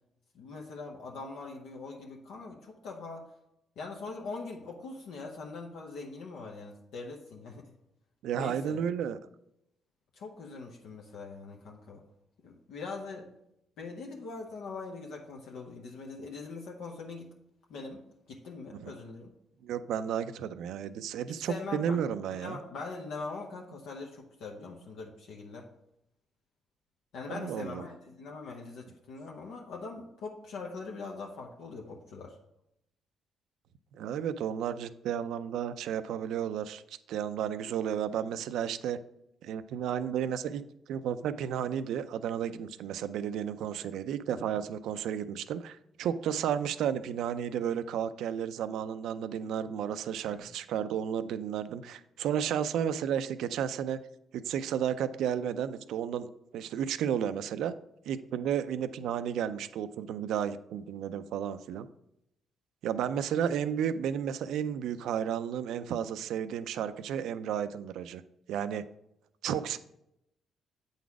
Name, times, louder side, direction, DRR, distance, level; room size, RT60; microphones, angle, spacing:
voice 1, 0.3-3.2 3.8-7.7 8.3-8.8 10.1-12.0 12.4-13.3 13.8-17.3 17.7-19.3 21.3-25.7 27.1-32.4 44.3-44.6 50.3-50.5, left 3 dB, 85° left, 0 dB, 0.9 m, -42 dB
voice 2, 8.2-9.2 18.8-18.9 19.6-22.6 27.3-27.8 33.9-36.8 37.1-39.0 39.4-40.6 40.9-54.0 54.3-56.3 56.5-57.8 58.1-61.9 62.8-68.2 68.5-68.8 69.4-69.8, right 9 dB, 80° right, 12 dB, 0.4 m, -32 dB
8.3 x 4.0 x 4.7 m, 0.81 s
cardioid pair, 90°, 0 cm